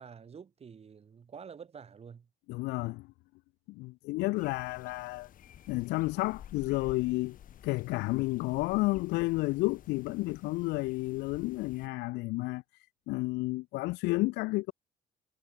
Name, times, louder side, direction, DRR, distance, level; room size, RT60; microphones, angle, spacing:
voice 1, 0.0-2.3, right 6 dB, 35° right, 5.4 m, -48 dB
voice 2, 2.5-3.1 3.7-5.3 5.7-7.4 7.6-14.7, left 22 dB, 85° left, 0.5 m, -31 dB
sound 1, 4.4-11.9, left 10 dB, 55° left, 2.2 m, -52 dB
cardioid pair, 110°, 17 cm